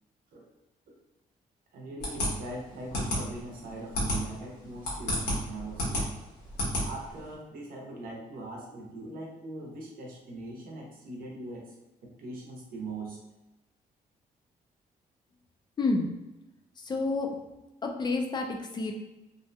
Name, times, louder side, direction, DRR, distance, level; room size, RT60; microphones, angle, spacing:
voice 1, 1.7-6.1 6.8-11.7 12.0-13.2, right 2 dB, 65° right, -1 dB, 0.7 m, -41 dB
sound 1, 2.0-7.3, equal, 90° left, 1.1 m, -31 dB
voice 2, 15.8-16.1 16.8-17.3 17.8-18.9, left 3 dB, 30° left, 1 dB, 0.4 m, -29 dB
2.6 x 2.1 x 2.6 m, 1.0 s
cardioid pair, 135°, 16 cm